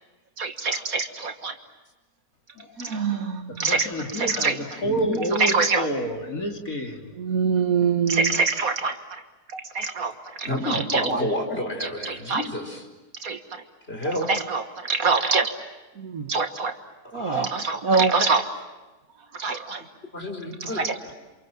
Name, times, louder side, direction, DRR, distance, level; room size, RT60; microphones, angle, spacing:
voice 1, 0.4-1.5 2.8-4.6 5.4-5.9 7.2-9.0 9.5-10.1 10.4-11.2 11.8-12.5 13.2-13.4 14.3-15.5 16.0-16.7 17.1-18.4 19.4-19.8 20.7-20.9, right 4 dB, 70° right, 6 dB, 1.9 m, -24 dB
voice 2, 3.7-7.0, equal, 65° left, 2 dB, 3.6 m, -28 dB
voice 3, 4.8-5.2 10.4-12.9 13.9-14.3 17.1-17.5 20.1-21.1, left 1 dB, 40° left, 4 dB, 4.7 m, -30 dB
29.0 x 27.5 x 7.4 m, 1.1 s
omnidirectional pair, 1.6 m